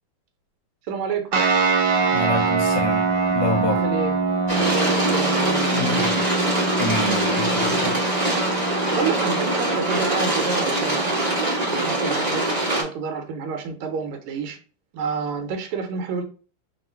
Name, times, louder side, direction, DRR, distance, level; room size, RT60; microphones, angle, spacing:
voice 1, 0.9-1.3 3.7-4.2 4.5-5.8 8.9-11.2 11.7-12.4 12.8-14.6 14.9-16.2, right 5 dB, 90° right, 1.7 m, -29 dB
sound 1, 1.3-12.2, right 4 dB, 65° right, 1.2 m, -25 dB
voice 2, 2.1-3.8 5.7-6.2 6.8-8.0, left 2 dB, 75° left, 1.0 m, -27 dB
sound 2, 4.5-12.8, right 1 dB, 25° right, 0.9 m, -23 dB
3.6 x 2.4 x 4.3 m
omnidirectional pair, 2.4 m